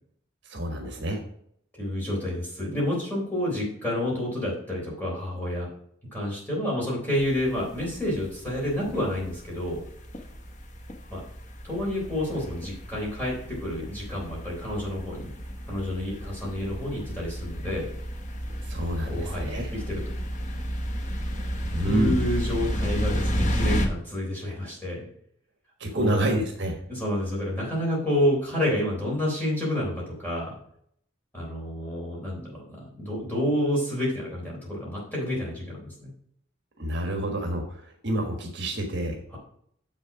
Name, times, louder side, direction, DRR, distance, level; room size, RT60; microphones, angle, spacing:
voice 1, 0.5-1.2 18.7-19.7 21.7-22.2 25.8-26.8 36.8-39.1, right 1 dB, 55° right, 2 dB, 1.5 m, -28 dB
voice 2, 1.8-5.7 6.1-9.8 11.1-11.2 11.6-15.3 15.7-17.9 19.1-20.1 21.8-25.1 25.9-26.2 26.9-30.6 31.3-36.1 39.3-39.4, left 1 dB, 10° left, -4 dB, 3.7 m, -29 dB
sound 1, 7.2-23.9, equal, 35° left, 1.0 m, -32 dB
7.0 x 6.6 x 4.8 m, 0.67 s
head